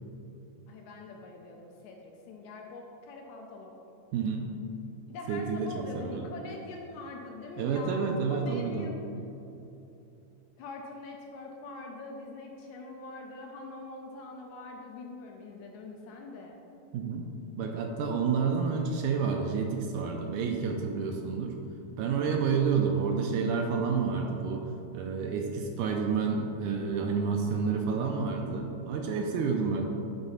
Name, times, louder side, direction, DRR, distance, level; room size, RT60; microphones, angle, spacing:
voice 1, 0.7-3.8 5.1-9.0 10.6-16.6, left 3 dB, 75° left, 0 dB, 1.8 m, -43 dB
voice 2, 4.1-4.5 5.3-6.3 7.6-8.9 16.9-17.3 17.6-21.5 22.0-24.6 24.9-29.8, right 5 dB, 80° right, 2 dB, 1.9 m, -29 dB
9.5 x 3.5 x 5.6 m, 2.8 s
omnidirectional pair, 3.8 m